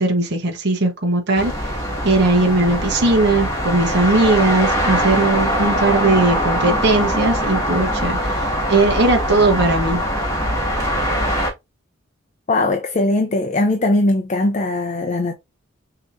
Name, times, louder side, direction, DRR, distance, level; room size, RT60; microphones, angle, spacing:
voice 1, 0.0-1.7 2.0-10.0, right 2 dB, 55° right, 1.1 m, -18 dB
sound 1, 1.4-11.5, equal, 15° left, 1.5 m, -22 dB
voice 2, 12.5-15.3, left 2 dB, 35° left, 0.5 m, -19 dB
6.3 x 3.0 x 2.5 m
head